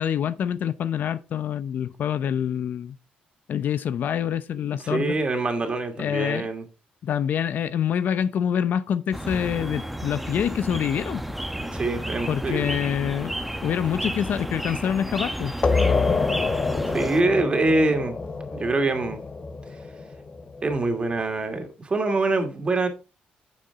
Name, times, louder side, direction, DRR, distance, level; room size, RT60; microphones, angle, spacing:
voice 1, 0.0-3.0 3.5-5.1 6.0-6.5 7.0-11.2 12.3-15.5, left 9 dB, 65° left, 0.6 m, -26 dB
voice 2, 4.6-6.6 11.5-12.8 16.5-18.2 18.5-19.2 20.6-22.9, right 2 dB, 30° right, 2.4 m, -25 dB
sound 1, 9.1-17.2, right 1 dB, 5° right, 0.9 m, -32 dB
sound 2, 15.6-21.0, left 4 dB, 30° left, 1.1 m, -26 dB
9.7 x 6.7 x 3.6 m
cardioid pair, 90°, 3 cm